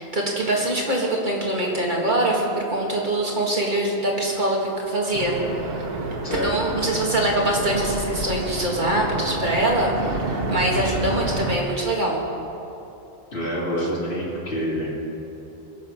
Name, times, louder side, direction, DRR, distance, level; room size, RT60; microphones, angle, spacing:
voice 1, 0.0-5.4 6.3-12.2, right 1 dB, 50° right, -2 dB, 2.1 m, -23 dB
sound 1, 5.1-11.6, right 2 dB, 65° right, 1.4 m, -28 dB
voice 2, 13.3-14.9, equal, 75° left, -8 dB, 3.2 m, -27 dB
21.5 x 7.5 x 5.9 m, 2.9 s
omnidirectional pair, 1.1 m